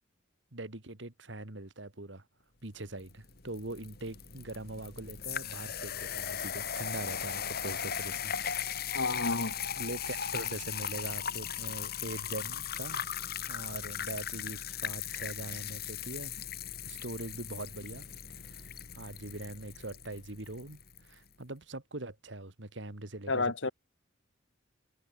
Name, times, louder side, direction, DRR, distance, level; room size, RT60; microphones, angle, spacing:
voice 1, 0.5-2.2 2.6-8.3 9.8-13.1 13.4-16.3 16.8-18.1 18.4-20.8 21.1-23.7, right 2 dB, 70° right, 2.4 m, -42 dB
sound 1, 3.0-21.1, left 8 dB, 55° left, 2.8 m, -38 dB
voice 2, 8.9-9.5 23.3-23.7, left 3 dB, 80° left, 2.1 m, -30 dB
head